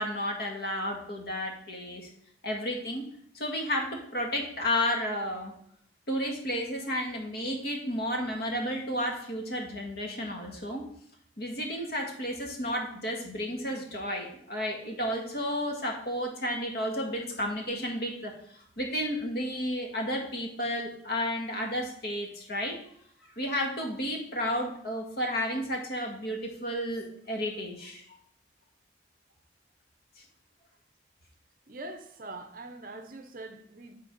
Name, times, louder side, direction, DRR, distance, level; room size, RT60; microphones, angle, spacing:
voice 1, 0.0-2.1 2.4-3.0 3.3-5.5 6.1-10.8 11.4-18.3 18.8-22.7 23.4-28.0, equal, 55° left, 1 dB, 1.6 m, -32 dB
voice 2, 31.7-33.9, right 2 dB, 45° right, 7 dB, 0.7 m, -43 dB
9.0 x 3.9 x 5.2 m, 0.67 s
head